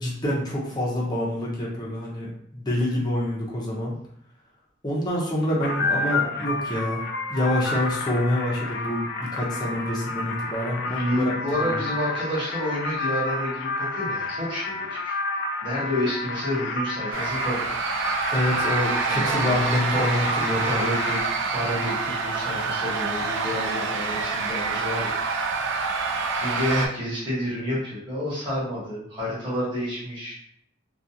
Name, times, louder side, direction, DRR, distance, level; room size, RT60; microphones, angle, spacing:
voice 1, 0.0-2.3 2.5-3.9 4.8-7.0 7.3-11.3 11.6-11.8 18.3-20.8, left 1 dB, 20° left, -5 dB, 0.6 m, -26 dB
sound 1, 5.6-21.2, left 3 dB, 55° left, 0.3 m, -30 dB
voice 2, 10.8-17.6 19.1-19.6 19.9-20.0 20.6-21.2 21.5-25.5 26.3-30.5, equal, 25° right, -8 dB, 1.1 m, -29 dB
sound 2, 17.1-26.9, right 4 dB, 65° right, 0.4 m, -27 dB
2.4 x 2.3 x 2.7 m, 0.67 s
head